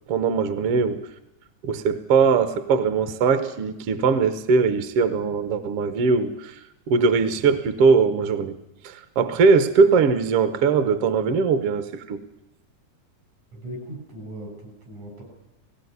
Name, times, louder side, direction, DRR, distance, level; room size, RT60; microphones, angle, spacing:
voice 1, 0.1-1.0 1.6-6.6 6.9-8.6 8.8-12.2, right 5 dB, 60° right, 10 dB, 1.8 m, -20 dB
voice 2, 13.5-15.2, right 1 dB, 80° right, 3 dB, 7.9 m, -38 dB
19.5 x 17.0 x 9.5 m, 0.89 s
omnidirectional pair, 3.3 m